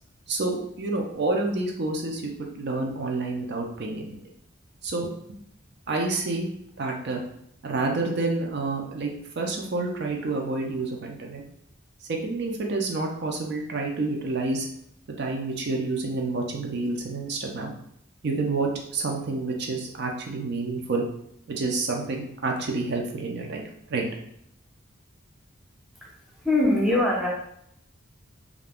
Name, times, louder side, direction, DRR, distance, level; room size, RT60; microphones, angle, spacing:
voice 1, 0.3-4.2 4.8-5.1 5.9-6.5 6.8-7.2 7.6-11.4 12.1-14.7 15.2-17.7 18.2-21.1 21.5-24.1, right 3 dB, 55° right, 1 dB, 0.4 m, -28 dB
voice 2, 26.4-27.3, left 1 dB, ahead, -5 dB, 0.6 m, -22 dB
2.4 x 2.2 x 3.4 m, 0.72 s
head